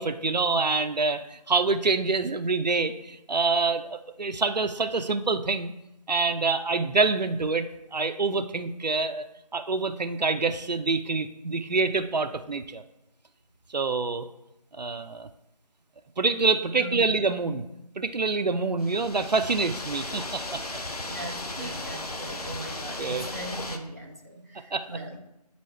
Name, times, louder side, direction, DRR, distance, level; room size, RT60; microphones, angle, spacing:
voice 1, 0.0-5.7 6.1-9.2 9.5-12.8 13.7-14.3 14.8-15.3 16.2-17.6 18.0-20.6 21.6-21.7 23.0-23.3 24.7-24.9, right 4 dB, 80° right, 9 dB, 0.5 m, -26 dB
voice 2, 16.7-17.1 21.0-25.2, right 1 dB, 25° right, -2 dB, 0.7 m, -39 dB
sound 1, 18.8-23.8, left 2 dB, 65° left, 0.8 m, -36 dB
8.5 x 4.1 x 3.2 m, 0.87 s
figure-of-eight pair, 170°, 21 cm